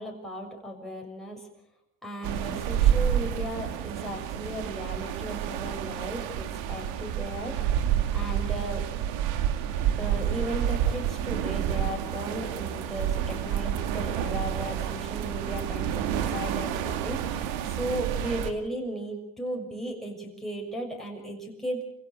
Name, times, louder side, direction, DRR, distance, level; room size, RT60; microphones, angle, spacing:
voice 1, 0.0-1.5 2.0-7.8 8.1-8.9 10.0-21.8, right 1 dB, ahead, -1 dB, 6.6 m, -36 dB
sound 1, 2.2-18.5, right 10 dB, 75° right, 2.3 m, -29 dB
28.5 x 16.5 x 6.4 m, 0.75 s
cardioid pair, 120°, 45 cm